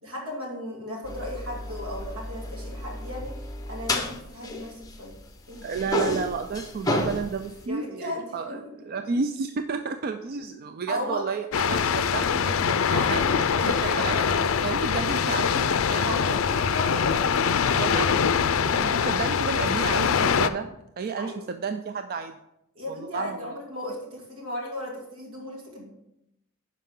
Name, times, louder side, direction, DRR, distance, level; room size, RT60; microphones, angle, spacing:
voice 1, 0.0-3.3 3.7-5.2 5.5-5.8 7.7-8.6 10.9-11.3 12.9-14.5 16.0-18.0 21.2-21.4 22.7-25.9, left 1 dB, 80° right, -2 dB, 2.7 m, -35 dB
sound 1, 1.0-5.3 5.5-7.6, left 2 dB, 15° left, 0.8 m, -32 dB
voice 2, 5.6-8.6 8.9-14.3 14.6-16.4 17.7-20.7 21.0-22.3 22.9-23.4, right 5 dB, 45° right, 8 dB, 0.4 m, -32 dB
sound 2, 11.5-20.5, left 7 dB, 70° left, 0.4 m, -23 dB
11.0 x 5.0 x 3.7 m, 0.83 s
head